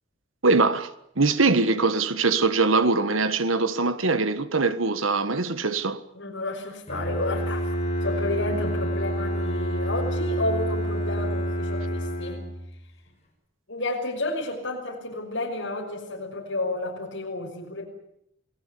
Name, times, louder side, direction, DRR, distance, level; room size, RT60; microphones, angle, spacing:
voice 1, 0.4-0.9 1.2-6.0, right 3 dB, 90° right, 1.6 m, -22 dB
voice 2, 6.1-7.8 8.0-12.4 13.7-17.9, left 2 dB, 70° left, 6.2 m, -31 dB
Bowed string instrument, 6.9-12.7, equal, 35° left, 7.0 m, -28 dB
28.0 x 18.5 x 8.5 m
head